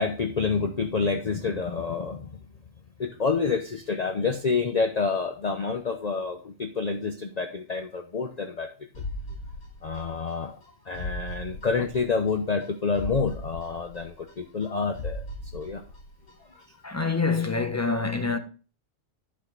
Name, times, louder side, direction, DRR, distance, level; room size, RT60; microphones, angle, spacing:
voice 1, 0.0-2.3 3.0-8.7 9.8-10.5 10.9-15.2 15.5-15.8 16.5-16.6, left 4 dB, 40° left, 0.8 m, -28 dB
sound 1, 8.9-10.3 10.6-10.7 10.9-12.3 12.6-12.7 12.9-14.7 14.9-16.3 16.6-16.7, left 1 dB, 75° left, 2.7 m, -37 dB
voice 2, 16.8-18.4, left 4 dB, 15° left, 1.0 m, -26 dB
11.0 x 5.8 x 3.9 m
omnidirectional pair, 1.2 m